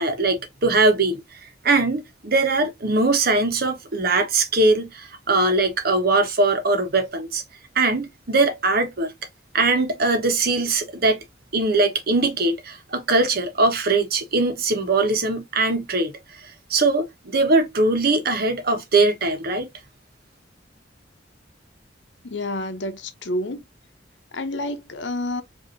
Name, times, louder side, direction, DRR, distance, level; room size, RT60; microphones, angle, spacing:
voice 1, 0.0-1.4 1.6-7.4 7.7-9.1 9.5-11.2 11.5-19.7, right 3 dB, 55° right, 1.1 m, -21 dB
voice 2, 22.2-23.7 24.3-25.4, left 1 dB, 80° left, 0.8 m, -29 dB
5.1 x 2.8 x 2.7 m
head